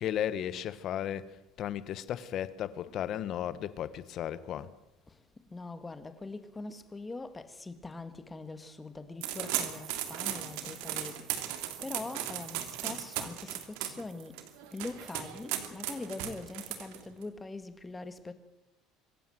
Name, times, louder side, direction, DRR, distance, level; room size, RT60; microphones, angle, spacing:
voice 1, 0.0-4.7, left 10 dB, 45° left, 1.2 m, -35 dB
voice 2, 5.5-14.4 14.7-18.3, left 3 dB, 10° left, 1.7 m, -43 dB
sound 1, 9.2-17.2, right 12 dB, 90° right, 3.0 m, -37 dB
25.5 x 16.0 x 7.9 m
cardioid pair, 160°, 0 cm